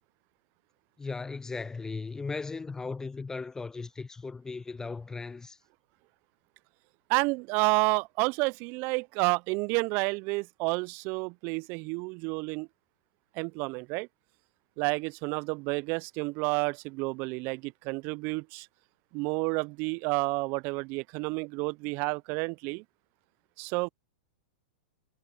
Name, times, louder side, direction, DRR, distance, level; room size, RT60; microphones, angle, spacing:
voice 1, 1.0-5.6, left 4 dB, 10° left, 0.4 m, -37 dB
voice 2, 7.1-12.7 13.4-14.1 14.8-18.7 19.1-22.8 23.6-23.9, right 28 dB, 45° right, 0.5 m, -30 dB
hypercardioid pair, 115°, 5 cm